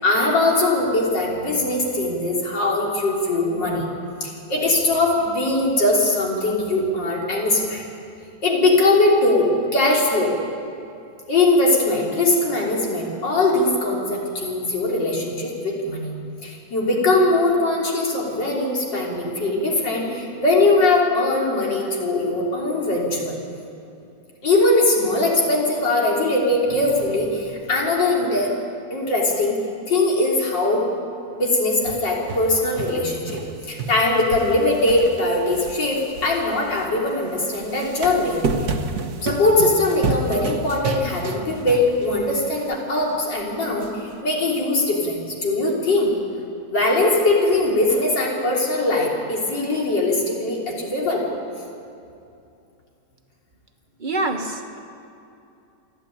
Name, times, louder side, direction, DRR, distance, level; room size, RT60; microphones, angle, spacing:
voice 1, 0.0-3.9 4.2-7.8 8.4-10.3 11.3-16.1 16.4-23.3 24.4-28.5 28.9-29.6 29.9-30.9 31.4-33.4 33.7-38.4 39.2-46.1 46.7-51.3, left 2 dB, 85° left, -3 dB, 4.1 m, -21 dB
sound 1, 31.9-33.5 33.8-36.9 37.6-42.3 42.6-42.7 43.8-43.9, right 3 dB, 60° right, 1.6 m, -30 dB
voice 2, 54.0-54.8, right 2 dB, 30° right, 4 dB, 1.4 m, -26 dB
28.0 x 10.5 x 9.0 m, 2.6 s
omnidirectional pair, 1.9 m